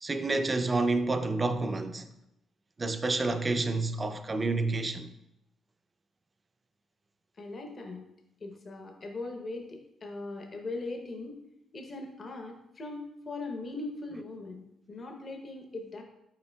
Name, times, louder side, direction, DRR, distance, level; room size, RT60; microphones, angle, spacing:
voice 1, 0.0-2.1 2.8-5.1, right 3 dB, 25° right, 0.4 m, -29 dB
voice 2, 7.4-8.0 8.4-11.4 11.7-16.0, left 2 dB, 40° left, 0.7 m, -40 dB
5.6 x 4.2 x 2.2 m
cardioid pair, 90°, 0 cm